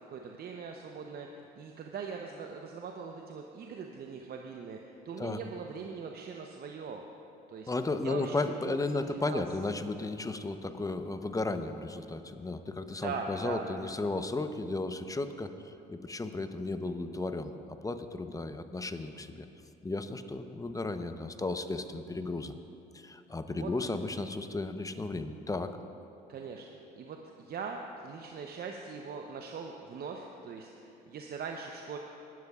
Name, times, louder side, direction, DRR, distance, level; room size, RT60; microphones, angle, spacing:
voice 1, 0.0-7.0 7.5-7.7 8.0-9.8 13.0-13.7 23.5-23.9 26.3-26.7 27.0-32.0, right 5 dB, 50° right, 2 dB, 0.9 m, -41 dB
voice 2, 7.7-15.5 15.9-19.5 19.8-22.5 22.9-25.8, left 2 dB, 15° left, 9 dB, 0.8 m, -34 dB
19.5 x 12.0 x 2.5 m, 2.7 s
hypercardioid pair, 60°, 21 cm